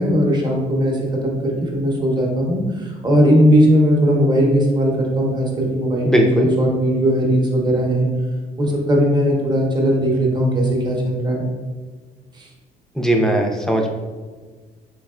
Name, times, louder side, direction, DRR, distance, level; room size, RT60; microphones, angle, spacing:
voice 1, 0.0-8.1 8.6-11.5 12.3-12.5, equal, 25° right, -1 dB, 0.8 m, -18 dB
voice 2, 6.0-6.5 13.0-13.9, right 1 dB, 5° left, 2 dB, 0.4 m, -18 dB
3.5 x 3.2 x 2.3 m, 1.4 s
cardioid pair, 110°, 17 cm